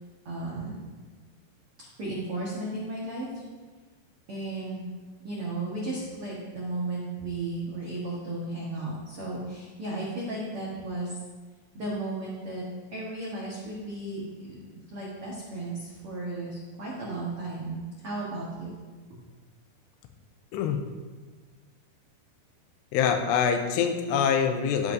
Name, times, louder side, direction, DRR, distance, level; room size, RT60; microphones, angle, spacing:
voice 1, 0.2-0.8 2.0-3.4 4.3-4.8 5.2-11.1 11.7-12.6 12.9-14.6 14.9-18.7, right 2 dB, 80° right, -6 dB, 1.2 m, -34 dB
voice 2, 20.5-20.8 22.9-24.9, left 7 dB, 90° left, 6 dB, 2.9 m, -25 dB
15.5 x 5.5 x 2.6 m, 1.4 s
omnidirectional pair, 4.9 m